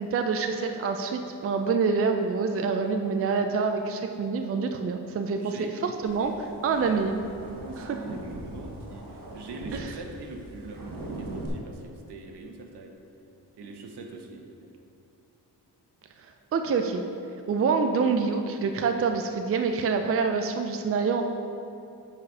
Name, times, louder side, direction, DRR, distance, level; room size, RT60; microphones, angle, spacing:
voice 1, 0.0-5.5 5.8-6.3 6.6-7.1 9.7-9.9 16.5-17.0 17.5-21.2, right 5 dB, 35° right, 5 dB, 0.4 m, -26 dB
voice 2, 5.3-5.7 6.1-6.3 7.4-13.0 13.6-14.7, right 2 dB, 80° right, 3 dB, 0.9 m, -42 dB
sound 1, 6.0-11.5, right 1 dB, 55° right, 1.3 m, -41 dB
8.0 x 4.1 x 5.5 m, 2.8 s
wide cardioid pair, 125°, 40 cm